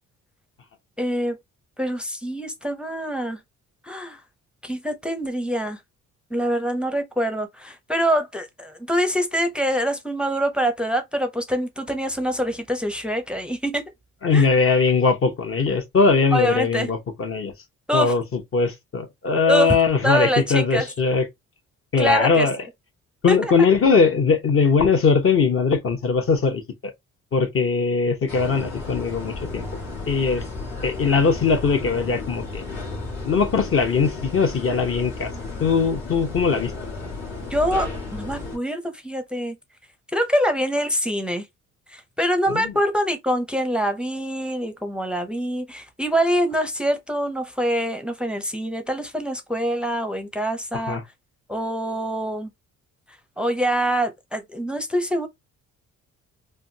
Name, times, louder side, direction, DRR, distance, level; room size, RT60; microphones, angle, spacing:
voice 1, 1.0-1.4 1.8-3.4 3.8-4.2 4.6-5.8 6.3-13.8 14.3-14.5 16.3-16.9 17.9-18.2 19.5-19.7 20.0-20.9 22.0-22.5 23.3-23.5 37.5-39.6 40.1-41.5 41.9-51.0 51.5-52.5 53.4-55.3, equal, 5° right, 0.6 m, -25 dB
voice 2, 14.2-17.5 17.9-21.3 21.9-22.6 23.2-26.9 27.3-29.7 30.1-30.4 30.8-32.6 33.2-35.3 35.6-36.7 42.5-42.7 50.7-51.0, left 4 dB, 45° left, 1.0 m, -20 dB
sound 1, 28.3-38.6, left 3 dB, 65° left, 1.5 m, -33 dB
3.4 x 2.2 x 2.7 m
cardioid pair, 90°, 30 cm